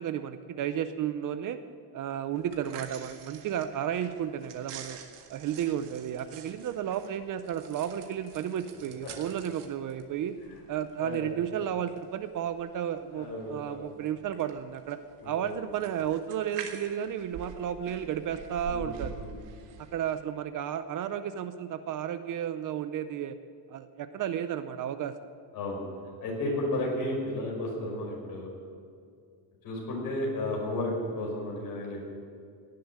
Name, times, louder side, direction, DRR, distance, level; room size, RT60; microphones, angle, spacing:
voice 1, 0.0-1.6 1.9-5.0 5.3-10.3 10.7-15.0 15.2-19.2 19.9-23.4 23.7-25.1 26.4-26.6, right 9 dB, 45° right, 11 dB, 0.6 m, -33 dB
sound 1, 2.4-20.2, right 7 dB, 70° right, 1.8 m, -47 dB
voice 2, 13.1-13.9 15.2-15.5 18.7-19.3 25.5-25.8 26.2-28.5 29.6-32.1, left 1 dB, 45° left, -1 dB, 5.6 m, -33 dB
18.0 x 7.7 x 9.8 m, 2.3 s
cardioid pair, 160°, 45 cm